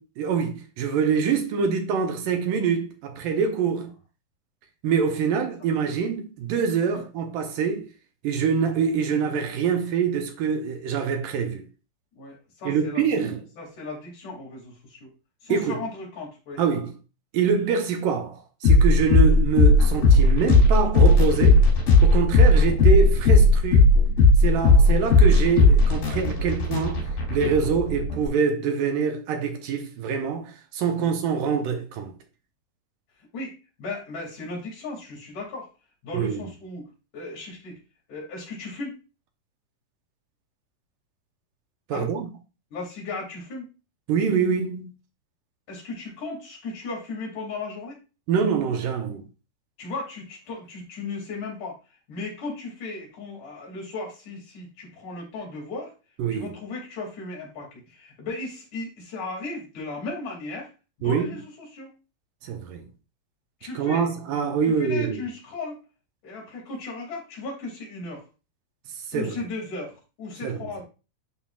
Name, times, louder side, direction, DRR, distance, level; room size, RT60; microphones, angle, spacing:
voice 1, 0.2-3.9 4.8-7.9 8.2-11.6 12.7-13.4 15.5-15.8 16.6-16.9 17.3-21.6 22.0-23.9 24.4-27.0 27.3-32.1 36.1-36.4 41.9-42.3 44.1-44.9 48.3-49.2 56.2-56.5 61.0-61.3 62.4-62.8 63.8-65.2 69.1-69.3 70.4-70.6, right 6 dB, 75° right, 2.5 m, -25 dB
voice 2, 12.1-13.2 13.6-15.1 15.4-16.6 25.6-26.6 31.0-31.1 33.3-35.7 36.0-36.8 37.1-37.8 38.1-39.0 41.9-42.1 42.7-43.7 45.7-48.0 49.8-51.8 52.1-55.9 56.3-60.7 61.0-61.9 63.6-64.1 64.7-65.8 66.2-68.3 69.1-70.8, left 3 dB, 60° left, 3.9 m, -36 dB
sound 1, 18.6-28.3, left 2 dB, 80° left, 4.7 m, -17 dB
11.5 x 3.9 x 2.4 m
omnidirectional pair, 3.9 m